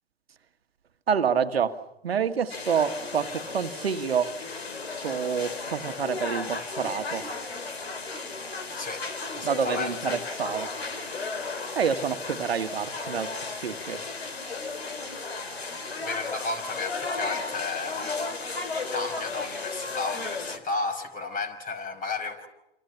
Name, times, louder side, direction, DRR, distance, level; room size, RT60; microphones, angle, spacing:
voice 1, 1.1-4.3 5.0-7.3 9.4-10.7 11.7-14.0, right 7 dB, 80° right, 1.7 m, -28 dB
sound 1, 2.5-20.6, left 3 dB, 85° left, 3.5 m, -34 dB
voice 2, 8.8-9.1 9.4-10.2 15.9-18.4 18.9-22.5, left 3 dB, 25° left, 5.7 m, -33 dB
28.0 x 27.5 x 5.7 m
hypercardioid pair, 100°, 30 cm